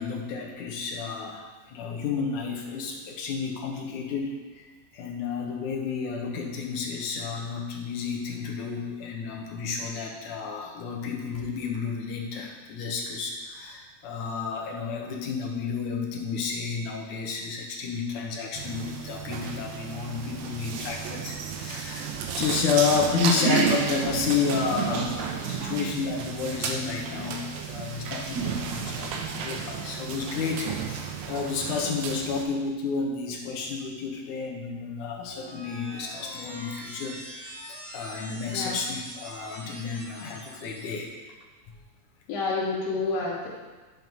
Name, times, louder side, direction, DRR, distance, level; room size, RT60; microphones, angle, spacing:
voice 1, 0.0-37.2 37.4-41.1, left 5 dB, 80° left, 0 dB, 2.6 m, -31 dB
sound 1, 18.6-32.4, right 6 dB, 75° right, 2.2 m, -32 dB
sound 2, 35.1-41.0, equal, 20° right, 1.4 m, -43 dB
voice 2, 42.3-43.5, left 3 dB, 55° left, -7 dB, 2.8 m, -28 dB
9.8 x 6.2 x 5.4 m, 1.3 s
omnidirectional pair, 3.5 m